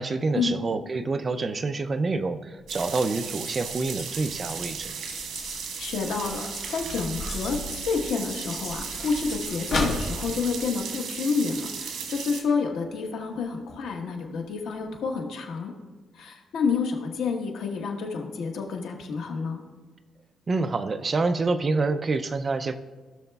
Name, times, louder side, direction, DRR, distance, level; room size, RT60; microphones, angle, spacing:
voice 1, 0.0-5.0 20.5-22.8, right 3 dB, 25° right, 10 dB, 0.3 m, -27 dB
sound 1, 2.6-11.8 12.1-12.2 12.5-12.9 13.4-13.5 14.0-14.1 14.4-14.5 14.9-15.0, left 2 dB, 50° left, 1.6 m, -36 dB
sound 2, 2.7-12.4, right 6 dB, 80° right, 1.2 m, -36 dB
sound 3, 3.4-9.5, left 2 dB, 30° left, 1.7 m, -45 dB
voice 2, 5.8-15.7 16.1-19.6, left 5 dB, 90° left, 2 dB, 1.2 m, -29 dB
16.5 x 6.4 x 2.3 m, 1.4 s
cardioid pair, 175°, 0 cm